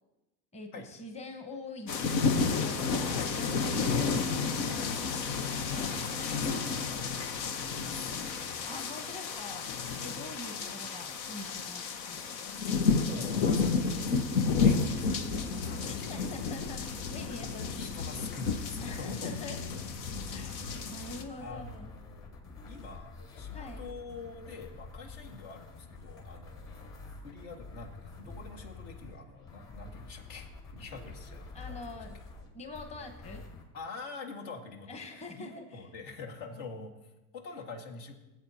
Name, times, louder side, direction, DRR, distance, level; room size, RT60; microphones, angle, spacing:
voice 1, 0.5-4.4 8.6-9.7 10.0-12.3 15.9-18.3 18.8-19.6 20.3-20.6 20.9-21.9 23.5-23.8 31.5-32.2 32.5-33.4 34.9-35.8, left 2 dB, 15° left, 5 dB, 1.0 m, -45 dB
sound 1, 1.9-21.2, left 5 dB, 90° left, 1.1 m, -31 dB
voice 2, 5.8-8.8 10.6-10.7 13.0-16.3 17.3-19.4 21.4-22.4 22.7-31.8 33.7-38.2, left 4 dB, 65° left, 1 dB, 1.9 m, -45 dB
sound 2, 15.3-33.6, left 3 dB, 40° left, 3.1 m, -47 dB
17.0 x 8.1 x 2.8 m, 1.0 s
supercardioid pair, 105°, 49 cm